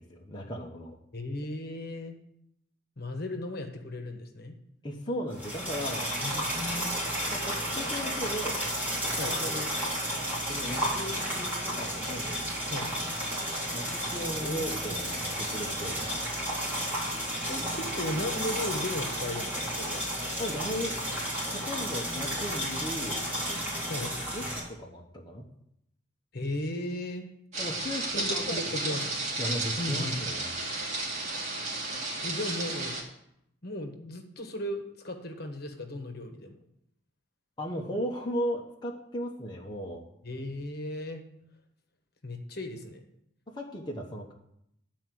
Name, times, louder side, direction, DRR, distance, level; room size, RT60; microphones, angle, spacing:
voice 1, 0.0-1.0 4.8-6.1 7.3-8.6 9.2-9.7 10.5-12.4 13.7-16.1 20.4-21.0 21.5-23.2 24.3-25.5 27.6-28.6 29.4-30.5 37.6-40.0 43.5-44.3, equal, 25° left, -1 dB, 1.1 m, -36 dB
voice 2, 1.1-2.2 3.0-4.5 6.2-6.9 9.2-9.4 12.7-12.9 14.4-15.0 17.5-20.0 23.9-24.1 26.3-27.3 28.1-29.1 29.8-30.1 32.2-32.9 33.6-36.6 40.2-41.2 42.2-43.0, left 1 dB, 55° left, 4 dB, 1.3 m, -36 dB
sound 1, 5.3-24.6, equal, 10° right, 3.9 m, -32 dB
sound 2, 27.5-33.0, right 2 dB, 40° right, 2.3 m, -33 dB
11.5 x 4.6 x 7.7 m, 0.76 s
head